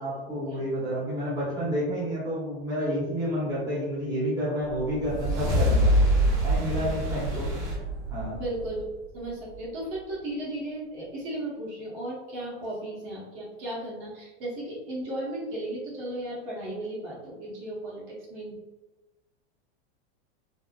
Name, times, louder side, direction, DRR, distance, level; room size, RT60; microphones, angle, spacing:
voice 1, 0.0-6.0 6.4-7.5 8.1-8.4, equal, 10° right, -8 dB, 1.0 m, -30 dB
sound 1, 4.7-9.3, equal, 75° right, 1.3 m, -25 dB
voice 2, 8.3-8.9 9.1-18.5, right 1 dB, 55° right, -7 dB, 1.3 m, -35 dB
3.4 x 2.1 x 2.4 m, 1.1 s
supercardioid pair, 135°, 32 cm